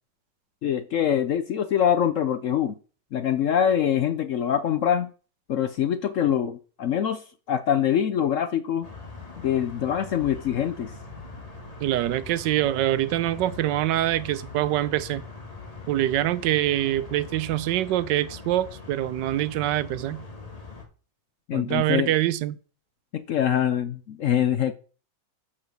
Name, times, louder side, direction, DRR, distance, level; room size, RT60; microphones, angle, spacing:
voice 1, 0.6-2.7 3.1-5.1 5.5-8.9 9.4-10.9 21.5-22.1 23.1-24.7, left 9 dB, 70° left, 0.7 m, -24 dB
sound 1, 8.8-20.8, left 3 dB, 20° left, 1.8 m, -42 dB
voice 2, 11.8-15.2 15.9-20.2 21.5-22.6, right 14 dB, 75° right, 1.2 m, -25 dB
6.7 x 5.7 x 6.3 m
omnidirectional pair, 2.0 m